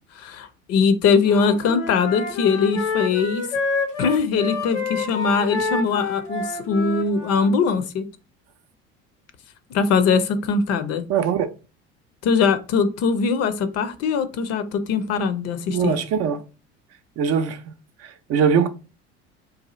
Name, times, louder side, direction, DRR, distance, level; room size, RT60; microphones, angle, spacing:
voice 1, 0.2-3.4 4.0-8.1 9.7-11.0 12.2-16.0, left 5 dB, 45° left, 0.6 m, -21 dB
Wind instrument woodwind instrument, 1.2-7.5, left 4 dB, 90° left, 0.8 m, -28 dB
voice 2, 11.1-11.5 15.7-16.4 17.2-17.7 18.0-18.7, right 7 dB, 45° right, 0.6 m, -21 dB
2.7 x 2.3 x 4.1 m
figure-of-eight pair, 60°, 35 cm